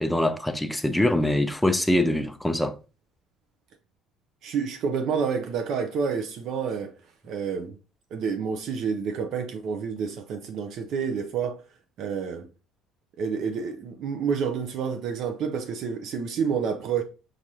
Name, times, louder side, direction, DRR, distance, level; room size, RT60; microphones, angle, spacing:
voice 1, 0.0-2.8, left 1 dB, 5° left, 0.4 m, -23 dB
voice 2, 4.4-6.9 7.2-7.8 8.1-11.6 12.0-12.5 13.2-17.0, right 6 dB, 60° right, 0.5 m, -29 dB
4.6 x 2.5 x 2.8 m
cardioid pair, 115°, 0 cm